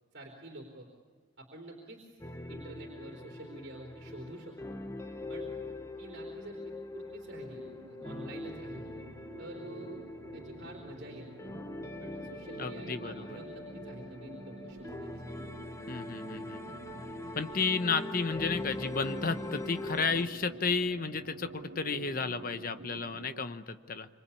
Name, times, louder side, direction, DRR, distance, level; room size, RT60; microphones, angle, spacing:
voice 1, 0.1-0.9 1.4-2.2 2.5-4.5 5.3-5.5 6.0-8.9 9.4-11.5 12.0-15.1, right 1 dB, 65° right, -1 dB, 3.8 m, -48 dB
sound 1, 2.2-20.3, left 2 dB, 15° left, 1.0 m, -42 dB
sound 2, 7.5-23.4, right 2 dB, 85° right, 1.1 m, -49 dB
voice 2, 12.6-13.4 15.9-16.6 17.3-24.1, left 4 dB, 50° left, 9 dB, 1.1 m, -32 dB
26.5 x 25.5 x 8.6 m, 1.5 s
head